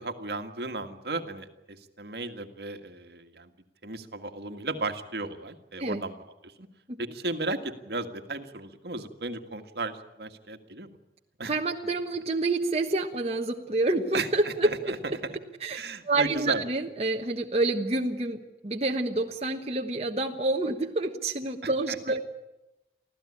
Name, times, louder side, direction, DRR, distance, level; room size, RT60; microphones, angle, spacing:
voice 1, 0.0-3.5 3.8-6.7 7.0-10.9 11.4-11.5 14.1-15.2 15.7-16.6 21.6-22.0, right 2 dB, 65° right, 7 dB, 1.8 m, -35 dB
voice 2, 11.5-14.9 15.6-15.8 16.0-22.2, right 2 dB, 35° right, 2 dB, 1.2 m, -28 dB
25.5 x 15.5 x 9.9 m, 0.97 s
head